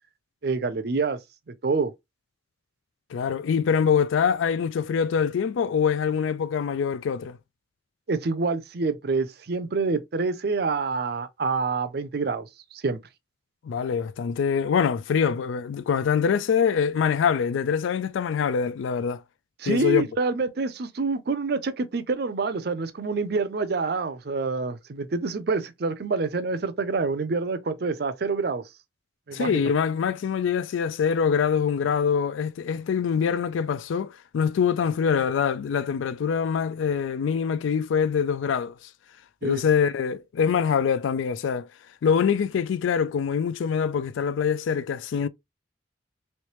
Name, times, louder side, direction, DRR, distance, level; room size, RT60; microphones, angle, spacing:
voice 1, 0.4-1.2 1.5-1.9 8.1-13.0 19.6-28.6 29.3-29.6 39.4-39.7, right 4 dB, 55° right, 0.5 m, -27 dB
voice 2, 3.1-7.4 13.6-19.2 19.7-20.1 29.3-38.9 39.4-41.7 42.0-45.3, left 7 dB, 80° left, 0.3 m, -24 dB
3.2 x 3.1 x 3.0 m
head